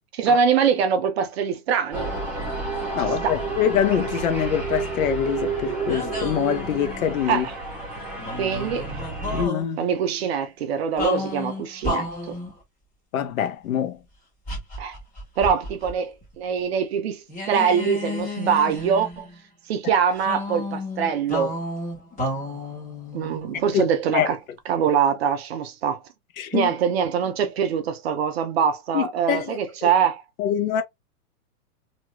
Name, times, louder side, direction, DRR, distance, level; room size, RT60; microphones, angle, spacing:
voice 1, 0.1-2.1 3.0-3.3 7.3-7.5 8.4-9.0 9.8-12.4 14.8-15.0 15.4-19.3 19.7-21.6 23.1-24.4 24.7-26.0 26.5-30.2, right 7 dB, 45° right, 0.6 m, -23 dB
sound 1, 1.9-9.5, right 3 dB, 5° right, 0.8 m, -30 dB
voice 2, 2.9-7.5 9.2-9.9 13.1-14.0 23.7-23.8 24.1-24.3 26.4-26.7 28.9-29.9 30.4-30.8, left 9 dB, 60° left, 1.0 m, -24 dB
sound 2, 5.9-7.2 8.1-9.6 11.0-12.6 14.5-15.9 16.2-16.3 17.3-19.4 20.2-24.0, left 2 dB, 15° left, 1.6 m, -32 dB
3.0 x 2.8 x 2.3 m
hypercardioid pair, 150°, 46 cm